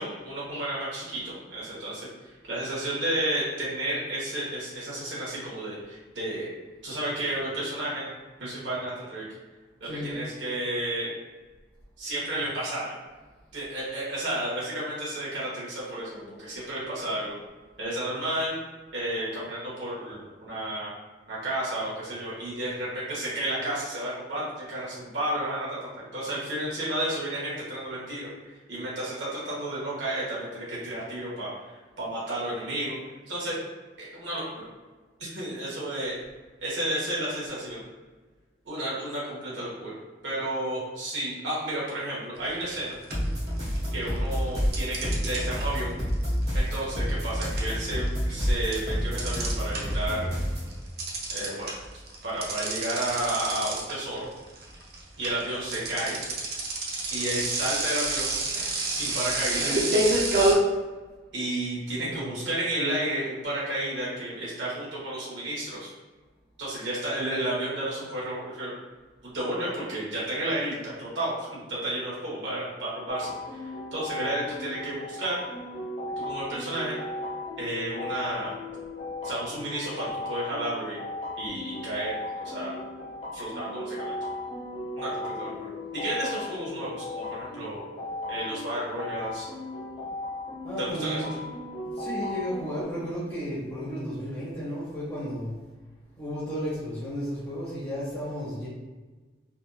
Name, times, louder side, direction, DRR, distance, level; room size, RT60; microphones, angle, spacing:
voice 1, 0.0-6.5 6.8-8.1 8.4-9.3 9.8-11.1 12.0-12.9 13.5-17.4 17.8-18.5 18.9-21.0 21.3-25.7 25.9-31.5 32.0-32.9 33.3-33.6 34.0-34.7 35.2-36.2 36.6-37.8 38.6-39.9 40.2-42.9 43.9-46.0 46.5-50.3 51.3-51.7 52.2-54.3 55.2-56.2 57.1-58.4 58.9-60.0 61.3-65.9 66.6-68.7 69.2-75.4 76.2-77.0 77.6-78.5 79.2-81.0 81.4-82.8 83.3-84.1 85.0-87.8 88.3-89.5 90.8-91.3, right 1 dB, 85° right, -7 dB, 1.3 m, -32 dB
voice 2, 9.8-10.2 62.0-62.4 90.6-91.5 91.8-95.5 96.2-98.7, equal, 15° left, -10 dB, 0.9 m, -33 dB
sound 1, 42.5-42.8 43.1-44.0 44.7-50.1 50.4-60.5, right 2 dB, 60° right, 0.6 m, -28 dB
sound 2, 43.1-50.7, equal, 40° right, 1.1 m, -28 dB
sound 3, 73.1-92.8, left 2 dB, 30° left, 0.6 m, -36 dB
3.5 x 2.5 x 2.3 m, 1.3 s
head